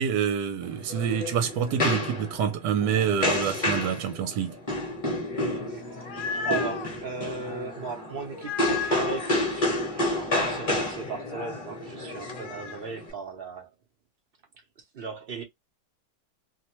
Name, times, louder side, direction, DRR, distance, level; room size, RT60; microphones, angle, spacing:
voice 1, 0.0-4.6, right 8 dB, 80° right, 1.2 m, -27 dB
sound 1, 0.6-13.1, left 1 dB, 25° left, 0.9 m, -30 dB
sound 2, 5.8-6.9 8.3-9.3 12.1-12.8, left 6 dB, 60° left, 1.1 m, -34 dB
voice 2, 6.3-13.7 14.9-15.4, right 5 dB, 50° right, 0.7 m, -37 dB
3.0 x 2.1 x 2.9 m
omnidirectional pair, 1.9 m